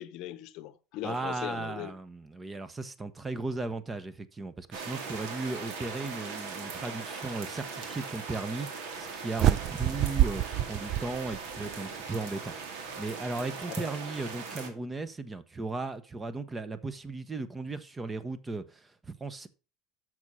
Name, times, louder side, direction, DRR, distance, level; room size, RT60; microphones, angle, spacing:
voice 1, 0.0-1.9 9.9-10.0 13.7-13.9, left 13 dB, 65° left, 0.7 m, -40 dB
voice 2, 1.0-19.5, right 3 dB, 20° right, 0.9 m, -36 dB
sound 1, 4.7-14.7, right 5 dB, 75° right, 2.0 m, -40 dB
sound 2, 9.4-11.7, right 13 dB, 50° right, 0.4 m, -27 dB
6.2 x 6.2 x 5.5 m
supercardioid pair, 105°, 0 cm